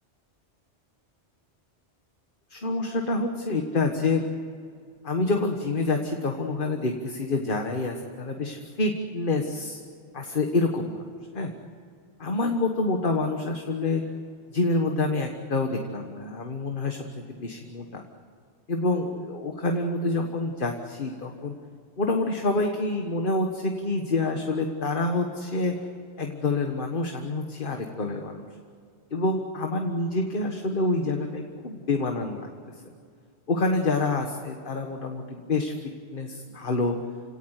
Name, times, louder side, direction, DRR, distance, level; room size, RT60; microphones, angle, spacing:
voice 1, 2.5-4.2 5.0-9.8 10.1-11.1 11.3-11.5 12.2-14.0 14.5-18.0 18.7-21.6 22.0-25.7 26.2-28.4 29.1-32.5 33.5-35.7 36.1-37.0, left 2 dB, 50° left, 3 dB, 1.7 m, -27 dB
29.5 x 18.0 x 8.3 m, 2.3 s
omnidirectional pair, 1.2 m